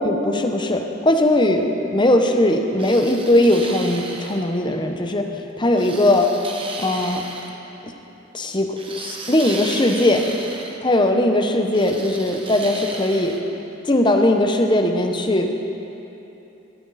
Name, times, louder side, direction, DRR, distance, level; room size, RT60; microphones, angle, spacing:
voice 1, 0.0-5.3 5.6-6.3 6.8-7.3 7.8-7.9 8.3-10.2 10.8-13.3 13.8-15.5, left 1 dB, 25° left, 4 dB, 0.9 m, -19 dB
sound 1, 2.8-4.4 5.8-7.5 8.8-10.8 11.7-13.4, right 3 dB, 25° right, 1.3 m, -35 dB
17.5 x 13.5 x 4.2 m, 3.0 s
head